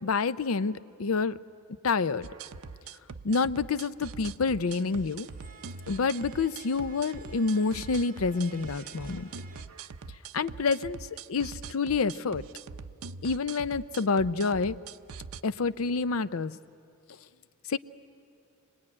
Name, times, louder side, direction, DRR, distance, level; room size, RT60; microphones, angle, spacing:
voice 1, 0.0-1.4 1.8-2.3 3.2-5.3 5.9-9.3 10.3-11.0 11.3-12.4 13.2-14.8 15.4-16.6 17.7-17.8, left 4 dB, 75° left, 15 dB, 0.6 m, -28 dB
sound 1, 2.2-15.4, right 5 dB, 85° right, 0.6 m, -43 dB
sound 2, 4.6-9.7, right 4 dB, 40° right, 1.8 m, -52 dB
25.0 x 19.5 x 9.8 m, 2.4 s
head